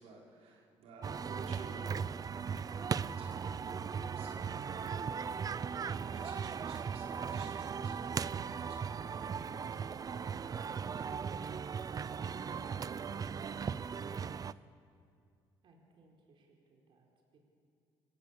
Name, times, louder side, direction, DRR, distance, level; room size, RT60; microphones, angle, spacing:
voice 1, 0.0-2.1 2.6-3.7 4.1-5.0 5.9-14.6, right 3 dB, 80° right, -2 dB, 5.3 m, -55 dB
sound 1, 1.0-14.5, right 6 dB, 35° right, 0.6 m, -38 dB
voice 2, 15.6-17.4, right 3 dB, 55° right, 0 dB, 4.3 m, -66 dB
28.0 x 22.0 x 8.7 m, 2.3 s
cardioid pair, 100°, 10 cm